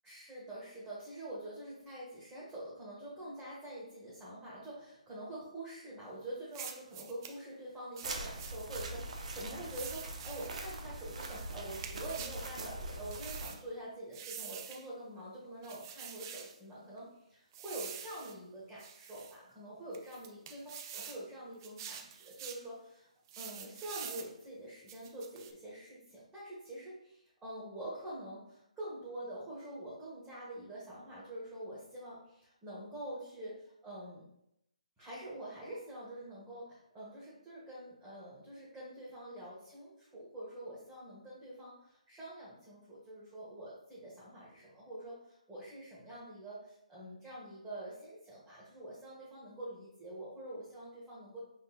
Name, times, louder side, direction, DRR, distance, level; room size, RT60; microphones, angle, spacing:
voice 1, 0.0-23.1 23.4-34.2 35.0-51.4, right 1 dB, 10° right, -9 dB, 1.2 m, -46 dB
sound 1, 6.5-7.4 8.0-8.9 9.7-10.5 11.2-12.4 13.1-13.6 14.1-14.9 15.6-16.5 17.5-18.4 18.8-19.4 19.9-21.2 21.6-22.6 23.3-24.3 24.9-25.5, right 8 dB, 30° right, 0.4 m, -46 dB
sound 2, 8.0-13.5, right 2 dB, 60° right, 0.7 m, -42 dB
5.3 x 3.7 x 2.4 m, 0.78 s
figure-of-eight pair, 145°, 4 cm